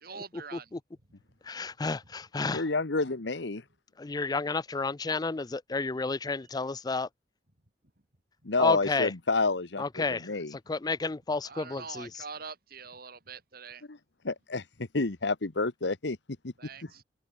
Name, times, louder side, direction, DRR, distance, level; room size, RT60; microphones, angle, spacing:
voice 1, 0.0-0.7 11.4-13.8 16.6-17.0, right 5 dB, 60° right, 3.8 m, -44 dB
voice 2, 1.4-2.6 4.0-7.1 8.6-9.1 9.8-12.2, left 3 dB, 20° left, 0.5 m, -31 dB
voice 3, 2.5-3.6 8.4-10.5 13.9-14.0 14.2-16.2 16.4-16.5, left 3 dB, 80° left, 1.3 m, -29 dB
open air
head